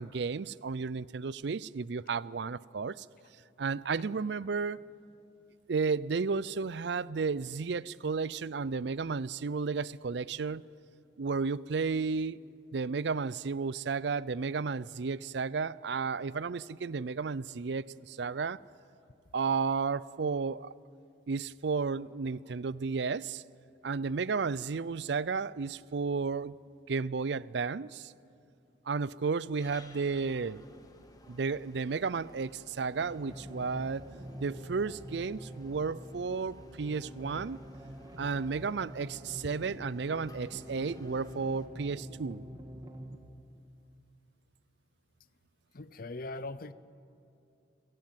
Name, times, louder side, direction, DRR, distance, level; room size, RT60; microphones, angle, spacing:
voice 1, 0.0-3.1 3.6-4.8 5.7-10.6 11.2-12.5 12.7-18.6 19.3-20.7 21.3-23.4 23.8-26.6 26.9-28.1 28.9-30.6 31.3-34.1 34.4-37.6 38.2-42.4, right 5 dB, 65° right, 0.5 m, -33 dB
sound 1, 29.6-41.7, left 1 dB, 20° left, 1.7 m, -57 dB
sound 2, 33.0-43.2, equal, 20° right, 1.6 m, -46 dB
voice 2, 45.7-46.7, left 2 dB, 50° left, 0.7 m, -40 dB
27.5 x 17.0 x 9.1 m
head